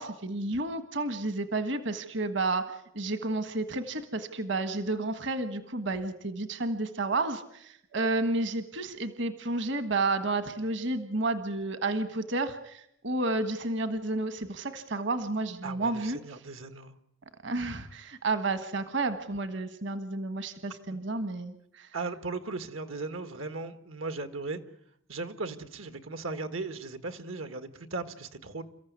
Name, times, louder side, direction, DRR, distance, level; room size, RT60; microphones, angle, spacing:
voice 1, 0.0-16.2 17.4-21.9, right 2 dB, 60° right, 10 dB, 1.5 m, -31 dB
voice 2, 15.6-16.9 21.9-24.6 25.1-28.6, right 3 dB, 85° right, 10 dB, 1.7 m, -37 dB
29.0 x 14.5 x 9.5 m, 0.76 s
head